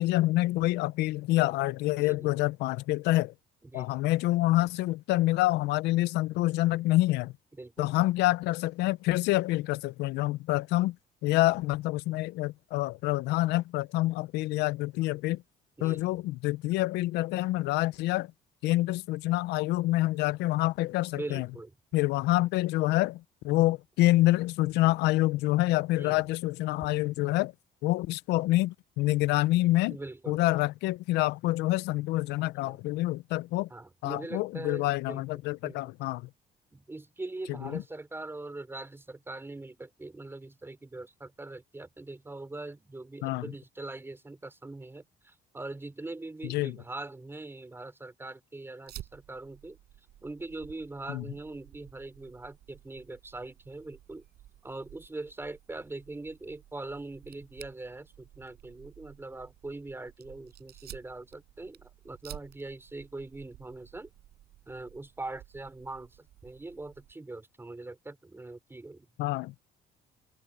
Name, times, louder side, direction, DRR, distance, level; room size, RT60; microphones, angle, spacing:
voice 1, 0.0-3.3 3.7-7.3 7.8-11.0 11.2-15.4 15.8-18.3 18.6-21.5 21.9-27.5 27.8-30.0 30.3-33.7 34.0-36.3 37.6-37.8 43.2-43.5 46.5-46.7 51.1-51.2 69.2-69.5, left 18 dB, 85° left, 0.5 m, -27 dB
voice 2, 1.9-2.4 3.6-4.0 7.5-8.0 15.8-16.2 21.1-21.7 26.0-26.3 29.9-30.4 32.6-32.8 33.7-35.2 35.6-35.8 36.7-49.8 50.2-54.2 54.6-64.1 64.7-69.1, right 2 dB, 15° right, 4.4 m, -42 dB
Fire, 48.9-67.1, right 13 dB, 70° right, 7.5 m, -53 dB
cardioid pair, 110°, 17 cm